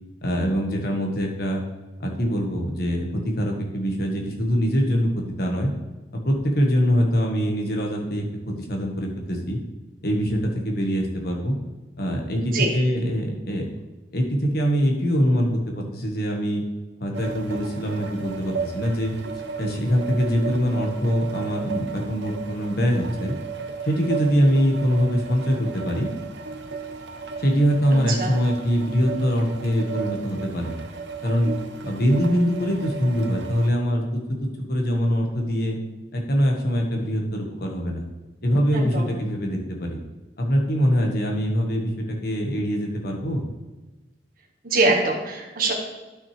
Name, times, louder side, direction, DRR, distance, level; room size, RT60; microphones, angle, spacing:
voice 1, 0.2-1.6 2.0-5.7 6.2-9.6 10.0-11.5 12.0-13.7 14.1-16.6 17.0-19.1 19.6-23.3 23.8-26.1 27.4-30.7 31.2-31.5 31.8-35.8 36.1-38.0 38.4-40.0 40.4-43.4, equal, 60° left, 1 dB, 1.5 m, -23 dB
voice 2, 12.4-12.7 27.9-28.3 38.7-39.2 44.6-45.7, right 2 dB, 55° right, 1 dB, 1.6 m, -24 dB
sound 1, 17.1-33.7, right 5 dB, 85° right, 0.8 m, -34 dB
12.0 x 6.1 x 3.3 m, 1.2 s
head